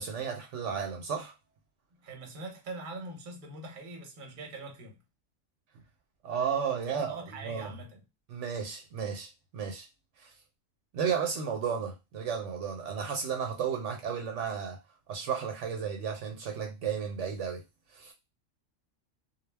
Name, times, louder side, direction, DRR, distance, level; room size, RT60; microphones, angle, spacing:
voice 1, 0.0-1.3 6.2-7.7 8.3-9.9 10.2-10.3 10.9-14.8 15.1-17.6 17.9-18.1, right 7 dB, 75° right, 0.9 m, -33 dB
voice 2, 2.0-5.0 6.9-8.0, right 2 dB, 45° right, 0.8 m, -43 dB
2.3 x 2.1 x 3.2 m
omnidirectional pair, 1.3 m